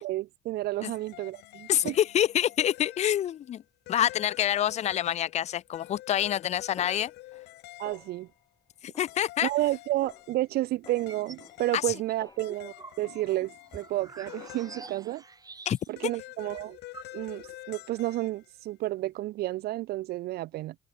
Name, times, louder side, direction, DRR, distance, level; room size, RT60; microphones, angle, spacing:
voice 1, 0.0-2.0 7.8-8.3 9.4-15.2 15.9-16.8 17.1-20.8, right 16 dB, 70° right, 0.6 m, -31 dB
sound 1, 0.7-3.5 3.9-8.3 9.1-10.5 10.8-15.3 16.0-18.5, left 18 dB, 80° left, 1.9 m, -48 dB
voice 2, 1.7-3.6 3.9-7.1 9.0-9.5 11.7-11.9 15.7-15.8 16.0-16.1, left 11 dB, 40° left, 0.5 m, -27 dB
Snare drum, 6.8-7.6 7.9-8.4 8.9-9.7 10.0-10.4 10.9-13.0 13.3-13.8 14.3-15.0, left 4 dB, 20° left, 2.2 m, -54 dB
sound 2, 10.9-11.5 11.9-16.0 16.3-16.4 16.6-17.5, right 4 dB, 20° right, 2.8 m, -47 dB
cardioid pair, 110°, 17 cm